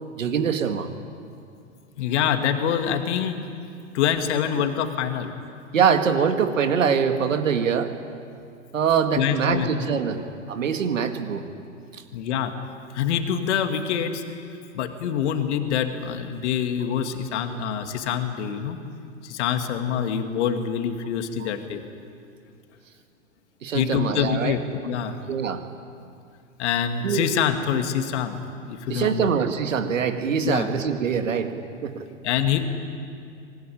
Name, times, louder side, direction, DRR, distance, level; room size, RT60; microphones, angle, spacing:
voice 1, 0.2-0.9 5.7-7.9 8.7-10.2 10.5-11.4 11.9-12.0 21.4-21.5 23.6-24.6 25.3-25.6 27.0-27.3 28.9-31.5 31.8-32.0, right 7 dB, 75° right, 7 dB, 2.1 m, -23 dB
voice 2, 2.0-3.4 3.9-5.3 9.2-9.7 12.1-12.5 12.9-14.2 14.7-18.8 19.2-21.8 23.7-25.2 26.6-28.4 28.6-29.3 30.4-30.7 32.2-32.6, left 8 dB, 60° left, 6 dB, 2.3 m, -25 dB
25.0 x 19.0 x 10.0 m, 2.4 s
figure-of-eight pair, 95°, 39 cm